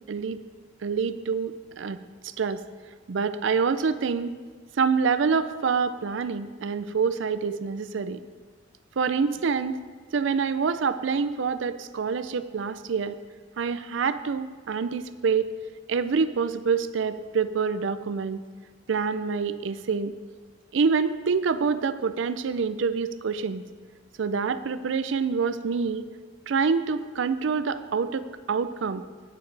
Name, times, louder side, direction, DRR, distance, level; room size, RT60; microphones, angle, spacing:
voice 1, 0.1-0.4 0.8-2.0 2.2-2.6 3.1-4.3 4.8-8.2 9.0-9.8 10.1-13.2 13.6-15.5 15.9-18.4 18.9-20.1 20.7-23.6 24.2-26.1 26.5-29.0, right 5 dB, 70° right, 12 dB, 0.4 m, -26 dB
10.0 x 9.3 x 3.3 m, 1.5 s
head